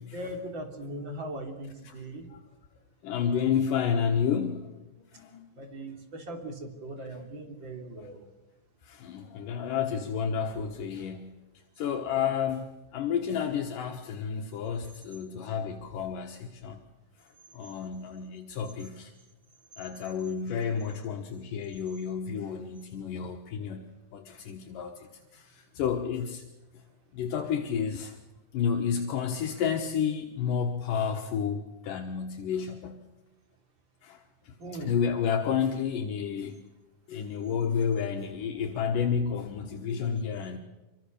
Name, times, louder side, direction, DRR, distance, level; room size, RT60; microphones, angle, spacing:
voice 1, 0.1-2.3 3.3-3.5 5.6-8.3 12.2-12.3 34.6-35.0, right 1 dB, 35° right, 4 dB, 3.6 m, -39 dB
voice 2, 3.0-4.8 5.1-5.5 7.2-7.3 8.0-8.1 8.8-11.4 11.8-16.8 17.5-19.1 19.8-25.1 25.3-26.4 27.1-28.2 28.5-33.0 34.0-36.6 37.1-40.6, left 7 dB, 75° left, 2 dB, 2.9 m, -31 dB
26.0 x 24.5 x 6.7 m, 1.0 s
omnidirectional pair, 4.0 m